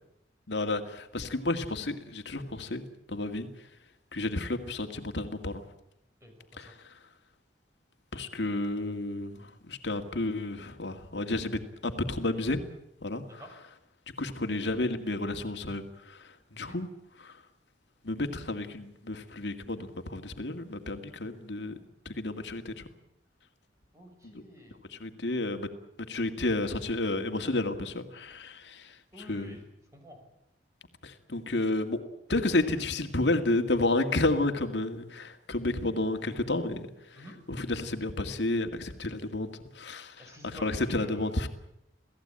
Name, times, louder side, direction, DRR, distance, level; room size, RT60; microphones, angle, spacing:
voice 1, 0.5-2.8 3.1-3.5 4.1-5.6 6.6-6.7 8.1-12.6 13.0-13.4 14.2-16.2 16.6-16.9 17.2-17.3 18.0-21.7 22.1-22.7 24.9-25.7 26.1-28.9 29.3-29.5 31.0-32.0 32.3-36.9 37.5-39.5 39.8-40.3 40.6-41.5, left 2 dB, 70° left, 6 dB, 2.1 m, -31 dB
voice 2, 6.2-6.7 13.2-13.6 16.5-16.8 23.9-24.8 29.1-29.6 29.9-30.2 37.1-37.4 40.2-41.3, equal, 15° right, 3 dB, 6.6 m, -49 dB
28.0 x 17.5 x 8.9 m, 0.81 s
head